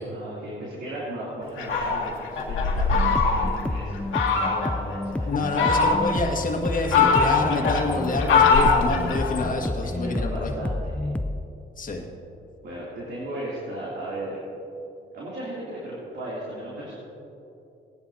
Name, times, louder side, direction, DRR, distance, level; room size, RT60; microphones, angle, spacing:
voice 1, 0.1-5.6 9.4-9.5 9.8-11.1 12.6-14.4 15.1-16.9, right 1 dB, 60° right, -7 dB, 3.0 m, -36 dB
Fowl, 1.6-3.6 4.1-4.7 5.3-6.3 6.7-9.5, left 4 dB, 80° left, 1.8 m, -22 dB
sound 1, 2.9-11.5, left 1 dB, 5° left, 0.3 m, -30 dB
voice 2, 5.2-10.5 11.8-12.1, left 3 dB, 45° left, 1 dB, 1.8 m, -27 dB
18.0 x 10.5 x 2.8 m, 2.8 s
cardioid pair, 90°, 20 cm